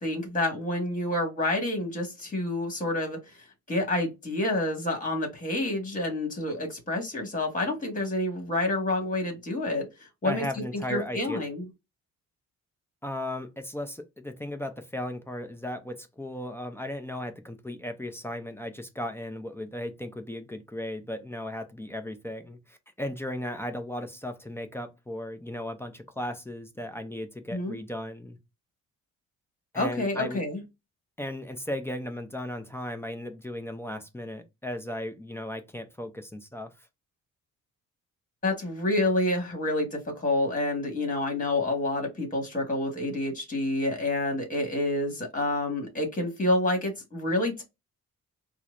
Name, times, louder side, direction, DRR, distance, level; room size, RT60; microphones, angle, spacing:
voice 1, 0.0-3.2 3.7-9.9 10.2-10.4 10.7-11.6 27.5-27.8 29.8-30.6 38.4-47.6, left 1 dB, 25° left, 1.8 m, -28 dB
voice 2, 10.2-11.4 13.0-28.4 29.7-30.4 31.2-36.7, left 1 dB, 10° left, 0.6 m, -36 dB
4.4 x 2.2 x 2.5 m
cardioid pair, 90°, 30 cm